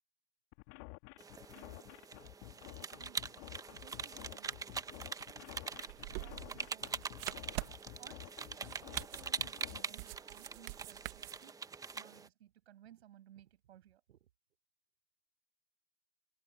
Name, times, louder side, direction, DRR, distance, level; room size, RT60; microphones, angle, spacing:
sound 1, 0.5-9.8, left 38 dB, 35° left, 2.7 m, -51 dB
sound 2, 1.2-12.3, right 5 dB, 10° right, 1.6 m, -44 dB
voice 1, 1.5-1.9 2.8-3.2 3.7-5.7 6.0-14.3, right 11 dB, 55° right, 7.7 m, -61 dB
sound 3, 3.6-11.4, right 28 dB, 35° right, 1.9 m, -47 dB
figure-of-eight pair, 110°, 38 cm